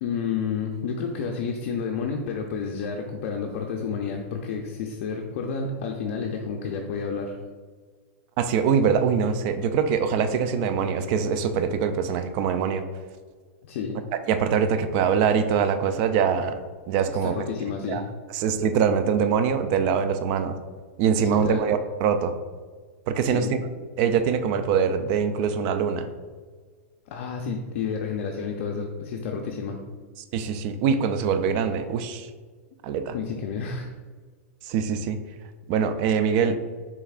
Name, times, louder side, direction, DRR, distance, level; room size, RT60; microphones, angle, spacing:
voice 1, 0.0-7.4 13.6-14.0 17.1-18.0 21.3-21.6 23.2-23.5 27.1-29.8 33.1-33.9, left 5 dB, 55° left, 1 dB, 0.5 m, -30 dB
voice 2, 8.4-12.8 14.3-16.6 16.9-17.3 17.9-18.0 18.3-20.6 21.0-22.3 23.1-23.6 24.0-26.1 30.3-32.3 32.8-33.1 34.7-35.2 35.7-36.6, right 7 dB, 45° right, 9 dB, 0.4 m, -23 dB
5.3 x 3.4 x 2.4 m, 1.5 s
supercardioid pair, 140°, 8 cm